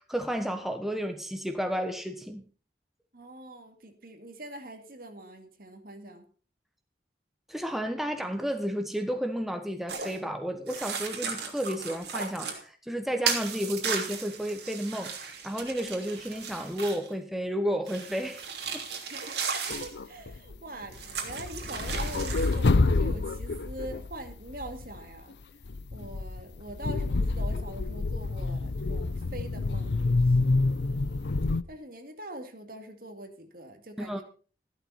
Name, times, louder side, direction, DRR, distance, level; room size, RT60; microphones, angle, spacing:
voice 1, 0.0-2.4 7.5-18.4 18.7-18.8 34.0-34.2, equal, ahead, 1.1 m, -32 dB
voice 2, 3.1-6.3 19.1-25.3 25.9-31.3 31.7-34.2, right 1 dB, 55° right, 2.3 m, -44 dB
sound 1, 9.9-10.2 10.7-12.6 13.2-17.1 17.9-19.9 20.9-22.6, right 6 dB, 70° right, 3.1 m, -35 dB
sound 2, 19.7-20.6 20.8-25.0 25.6-31.6, left 3 dB, 75° left, 0.7 m, -28 dB
14.5 x 12.0 x 4.2 m
head